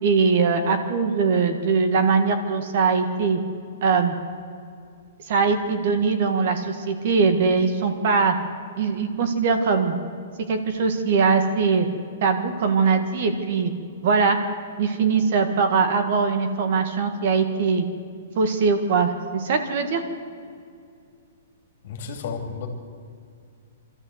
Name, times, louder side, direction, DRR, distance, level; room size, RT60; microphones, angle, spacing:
voice 1, 0.0-3.4 3.8-4.1 5.3-8.4 8.8-9.9 10.5-11.9 12.2-13.7 14.0-14.4 14.8-17.9 18.4-20.0, right 5 dB, 40° right, 7 dB, 1.7 m, -21 dB
voice 2, 21.8-22.7, left 5 dB, 45° left, 4 dB, 2.9 m, -32 dB
25.5 x 13.5 x 8.1 m, 2.3 s
hypercardioid pair, 175°, 0 cm